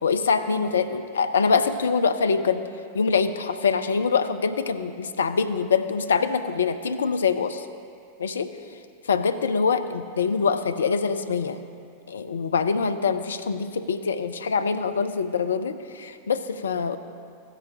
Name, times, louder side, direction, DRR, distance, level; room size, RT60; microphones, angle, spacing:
voice 1, 0.0-2.7 2.9-7.6 8.2-8.5 9.1-11.6 12.1-17.0, left 5 dB, 70° left, 10 dB, 0.5 m, -24 dB
16.0 x 8.2 x 2.8 m, 2.4 s
figure-of-eight pair, 90°, 0 cm